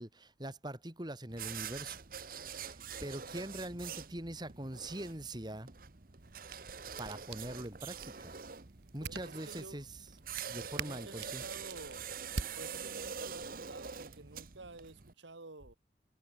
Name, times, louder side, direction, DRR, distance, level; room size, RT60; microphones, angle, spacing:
voice 1, 0.0-2.0 2.6-5.7 7.0-8.3 8.9-10.0 10.5-11.4, right 1 dB, 25° right, 2.6 m, -43 dB
sound 1, 1.3-15.1, right 7 dB, 50° right, 1.1 m, -45 dB
sound 2, 6.2-13.3, right 4 dB, 65° right, 1.7 m, -47 dB
voice 2, 9.0-9.8 10.8-12.1 12.4-15.7, right 2 dB, 85° right, 2.0 m, -51 dB
head